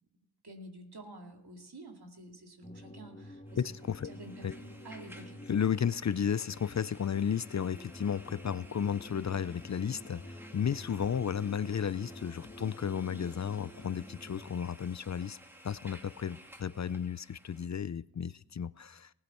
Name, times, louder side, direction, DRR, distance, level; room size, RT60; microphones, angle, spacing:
voice 1, 0.4-3.6 4.0-5.4, right 1 dB, 75° right, 3 dB, 2.4 m, -49 dB
sound 1, 2.6-14.6, left 1 dB, 20° left, 1.7 m, -49 dB
sound 2, 3.5-17.7, equal, 5° right, 2.3 m, -55 dB
voice 2, 3.6-4.1 4.4-4.5 5.5-15.4 15.6-19.1, left 8 dB, 45° left, 18 dB, 0.4 m, -33 dB
19.0 x 8.5 x 4.3 m, 0.83 s
wide cardioid pair, 50°, 39 cm